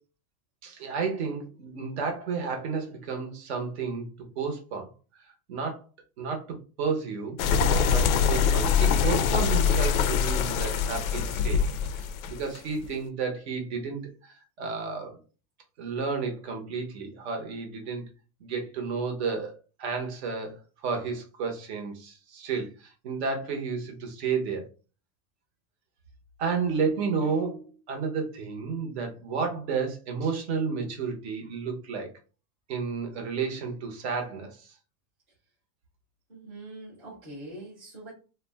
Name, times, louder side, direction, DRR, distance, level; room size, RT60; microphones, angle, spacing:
voice 1, 0.6-4.1 4.4-4.9 5.2-5.8 6.2-7.4 7.9-11.6 11.9-15.2 15.8-18.0 18.4-24.7 26.4-32.1 32.7-34.7, right 5 dB, 45° right, 3 dB, 0.8 m, -32 dB
sound 1, 7.4-12.9, left 6 dB, 60° left, 0.5 m, -24 dB
voice 2, 36.3-38.1, right 1 dB, 10° right, -8 dB, 0.4 m, -43 dB
2.4 x 2.1 x 3.4 m, 0.34 s
supercardioid pair, 170°, 47 cm